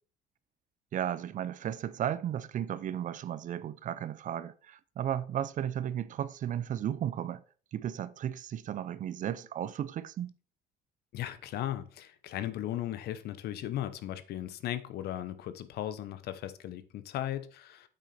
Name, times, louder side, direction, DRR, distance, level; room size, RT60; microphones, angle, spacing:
voice 1, 0.9-7.4 7.7-10.3, right 10 dB, 50° right, 0.5 m, -34 dB
voice 2, 11.1-17.9, left 12 dB, 70° left, 0.9 m, -37 dB
8.3 x 6.2 x 4.3 m
cardioid pair, 110°, 17 cm